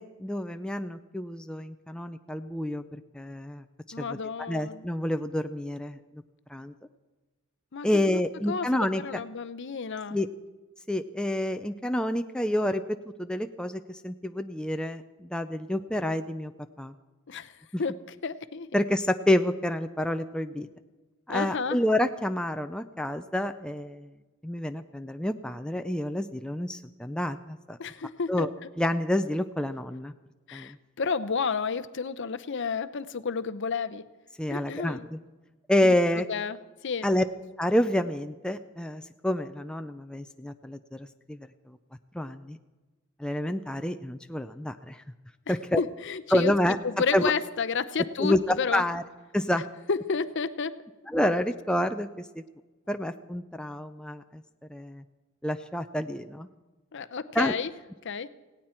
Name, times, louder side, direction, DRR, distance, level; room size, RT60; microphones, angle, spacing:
voice 1, 0.0-3.6 4.0-4.2 4.5-6.2 6.5-6.7 7.8-9.2 10.1-10.3 10.9-16.5 16.8-16.9 18.7-20.7 21.3-24.1 24.4-27.8 28.3-28.5 28.8-30.1 30.5-30.8 34.4-35.2 35.7-36.3 37.0-37.2 37.6-41.8 42.1-42.6 43.2-45.0 45.5-45.8 46.3-46.8 47.1-47.3 48.2-49.0 49.3-49.6 51.1-52.4 52.9-54.4 54.7-55.0 55.4-56.5 57.3-57.6, left 1 dB, 5° left, 7 dB, 0.4 m, -28 dB
voice 2, 3.9-4.8 7.7-8.2 8.5-10.2 17.3-17.5 17.8-18.0 18.2-18.7 21.3-21.8 27.8-28.5 30.5-34.1 34.5-35.0 35.8-35.9 36.3-36.6 36.8-37.1 45.5-46.5 46.8-48.8 49.9-50.7 56.9-57.7 58.0-58.3, left 5 dB, 55° left, 12 dB, 0.7 m, -31 dB
18.0 x 17.5 x 4.4 m, 1.2 s
head